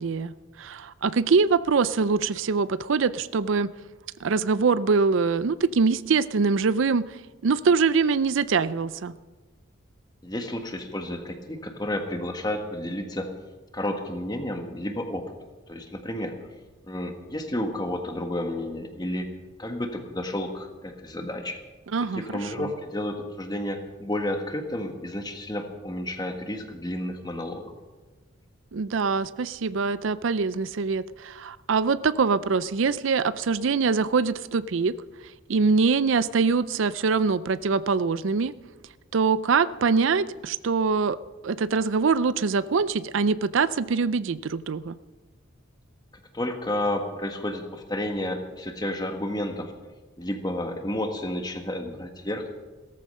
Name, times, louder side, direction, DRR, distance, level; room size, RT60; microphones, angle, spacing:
voice 1, 0.0-3.7 4.2-9.1 21.9-22.7 28.7-34.9 35.5-38.5 39.1-41.2 41.4-45.0, right 4 dB, 70° right, 16 dB, 0.5 m, -24 dB
voice 2, 10.2-13.3 13.7-15.3 15.7-16.3 16.8-19.3 19.6-21.6 22.1-27.7 46.3-49.7 50.2-52.5, left 1 dB, 20° left, 5 dB, 1.5 m, -31 dB
17.0 x 14.0 x 5.5 m, 1.2 s
head